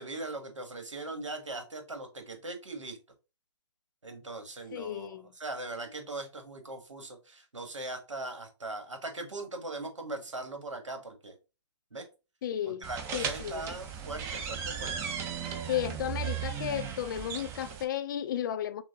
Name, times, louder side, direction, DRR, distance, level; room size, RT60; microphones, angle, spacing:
voice 1, 0.0-3.0 4.0-11.3 11.9-12.1 12.7-15.1, right 2 dB, 90° right, 1.2 m, -40 dB
voice 2, 4.7-5.3 12.4-12.9 13.1-13.6 15.7-18.8, left 10 dB, 45° left, 0.4 m, -33 dB
sound 1, 12.8-17.8, right 7 dB, 15° right, 0.4 m, -36 dB
6.0 x 2.1 x 2.7 m
figure-of-eight pair, 135°, 15 cm